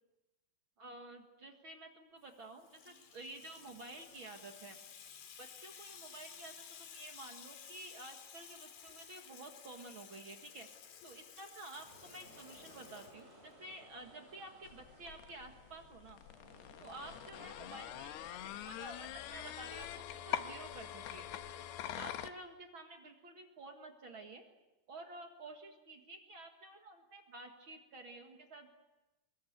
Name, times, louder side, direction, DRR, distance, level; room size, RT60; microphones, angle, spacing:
voice 1, 0.8-4.8 5.4-10.7 11.0-16.2 16.8-21.3 21.9-24.4 24.9-28.7, right 2 dB, 45° right, 4 dB, 1.7 m, -51 dB
Water tap faucet / Sink (filling or washing), 2.3-13.7, left 7 dB, 65° left, 3.8 m, -55 dB
sound 1, 11.7-18.8, equal, 15° left, 7.1 m, -60 dB
sound 2, 14.6-22.3, left 11 dB, 85° left, 3.0 m, -44 dB
24.5 x 23.0 x 8.0 m, 1.0 s
omnidirectional pair, 4.7 m